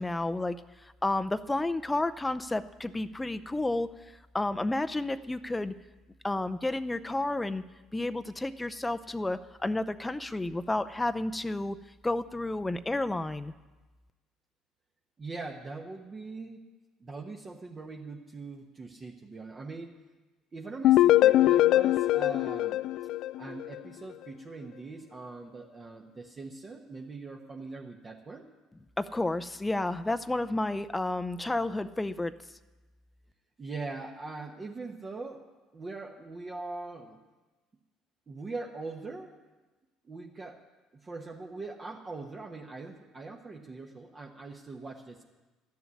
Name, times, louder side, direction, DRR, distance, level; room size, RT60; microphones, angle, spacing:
voice 1, 0.0-3.9 4.3-5.7 6.2-7.6 7.9-11.8 12.0-13.5 29.0-32.3, left 2 dB, 15° left, 10 dB, 0.6 m, -31 dB
voice 2, 15.2-16.6 17.0-19.9 20.5-22.8 23.4-28.5 33.6-35.5 35.7-37.2 38.3-39.4 40.0-40.6 40.9-45.2, right 3 dB, 35° right, 0 dB, 1.3 m, -41 dB
sound 1, 20.8-23.8, left 14 dB, 65° left, 0.3 m, -22 dB
12.5 x 7.0 x 9.8 m, 1.2 s
hypercardioid pair, 65°, 0 cm